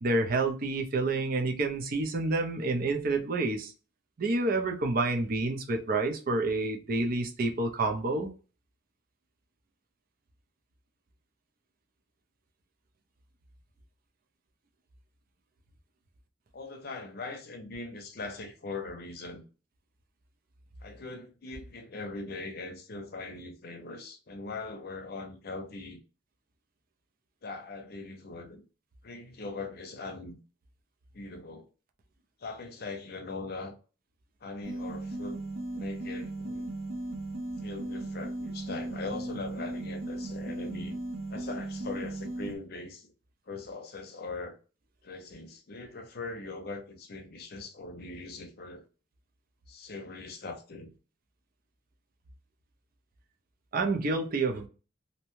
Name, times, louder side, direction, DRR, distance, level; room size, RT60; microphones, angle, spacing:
voice 1, 0.0-3.7 4.2-8.3 53.7-54.7, right 3 dB, 45° right, 0.5 m, -28 dB
voice 2, 16.5-19.4 20.8-26.0 27.4-28.6 29.0-30.4 31.1-31.7 32.4-33.7 34.4-35.4 35.7-36.7 37.6-41.0 41.3-43.1 43.5-44.6 45.0-48.8 49.7-50.9, left 3 dB, 50° left, 0.6 m, -41 dB
sound 1, 34.6-42.6, right 2 dB, 85° right, 0.7 m, -37 dB
2.7 x 2.1 x 3.0 m
head